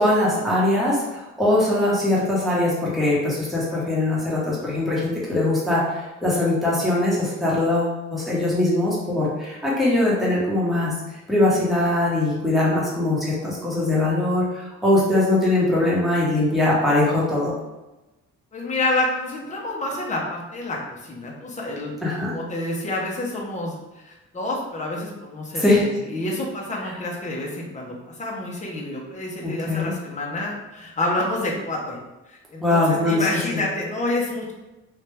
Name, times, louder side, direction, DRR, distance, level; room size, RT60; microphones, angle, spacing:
voice 1, 0.0-17.5 22.0-22.3 25.5-25.9 29.4-29.9 32.6-33.3, left 2 dB, ahead, -7 dB, 1.4 m, -21 dB
voice 2, 18.5-21.9 22.3-32.0 32.3-34.5, left 2 dB, 25° left, -2 dB, 1.0 m, -28 dB
3.4 x 2.7 x 3.4 m, 1.0 s
cardioid pair, 90°, 30 cm